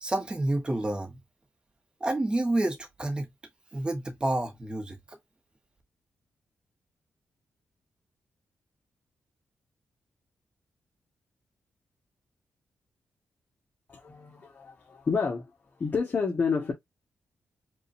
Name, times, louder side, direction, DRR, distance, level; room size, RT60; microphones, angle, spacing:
voice 1, 0.0-1.2 2.0-3.3 3.7-5.2, right 2 dB, 20° right, 1.4 m, -29 dB
voice 2, 13.9-15.4 15.8-16.7, left 5 dB, 40° left, 1.5 m, -29 dB
5.2 x 2.8 x 2.7 m
cardioid pair, 105°, 4 cm